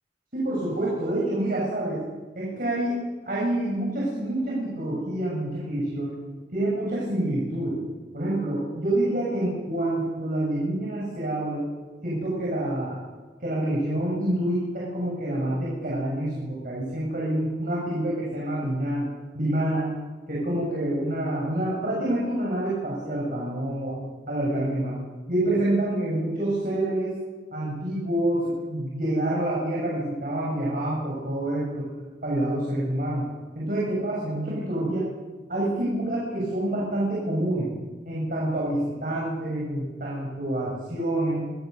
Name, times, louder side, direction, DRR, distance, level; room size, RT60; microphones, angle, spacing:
voice 1, 0.3-2.0 2.4-6.1 6.5-7.8 8.1-11.6 12.0-13.0 13.4-19.0 19.3-19.9 20.3-24.0 24.3-25.0 25.3-27.1 27.5-31.8 32.2-33.3 33.6-35.1 35.5-37.7 38.1-41.4, right 1 dB, 50° right, -5 dB, 7.1 m, -27 dB
26.5 x 18.0 x 6.8 m, 1.4 s
head